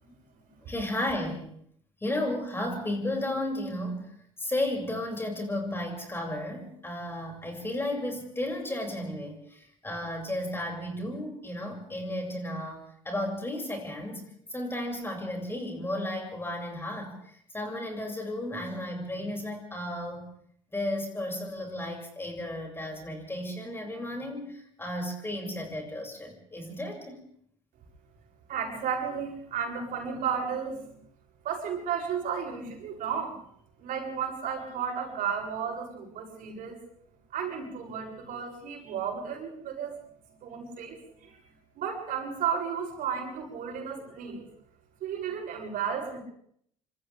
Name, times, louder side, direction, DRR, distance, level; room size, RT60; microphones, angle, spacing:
voice 1, 0.6-1.5 2.0-4.1 4.4-20.3 20.7-27.2, left 1 dB, 15° left, 1 dB, 6.8 m, -34 dB
voice 2, 28.5-31.0 31.4-33.4 33.8-36.8 37.3-40.0 40.4-41.4 41.8-44.5 45.0-46.2, right 7 dB, 50° right, 0 dB, 7.8 m, -33 dB
28.0 x 26.0 x 3.6 m, 0.67 s
figure-of-eight pair, 60°, 17 cm